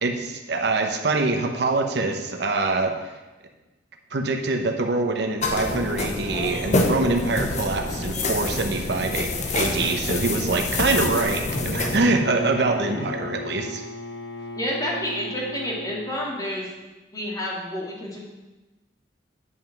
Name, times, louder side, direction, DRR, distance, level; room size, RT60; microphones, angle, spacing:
voice 1, 0.0-2.9 4.1-13.8, right 3 dB, 70° right, 4 dB, 0.9 m, -24 dB
sound 1, 5.4-12.0, left 2 dB, 40° left, 1.0 m, -27 dB
Bowed string instrument, 11.5-16.3, left 1 dB, 75° left, 0.9 m, -35 dB
voice 2, 14.5-16.7 17.1-18.2, left 1 dB, 20° left, -4 dB, 2.3 m, -29 dB
9.7 x 5.6 x 6.0 m, 1.1 s
head